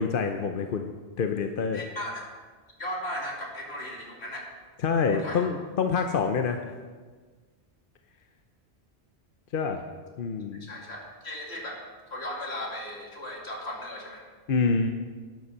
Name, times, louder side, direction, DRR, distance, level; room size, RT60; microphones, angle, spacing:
voice 1, 0.0-1.8 4.8-6.6 9.5-9.8 10.2-10.7 14.5-14.9, left 5 dB, 60° left, 5 dB, 0.9 m, -26 dB
voice 2, 1.7-2.3 2.8-4.5 5.1-5.5 10.6-14.2, left 1 dB, 75° left, -2 dB, 2.7 m, -37 dB
12.0 x 9.4 x 5.6 m, 1.4 s
omnidirectional pair, 1.1 m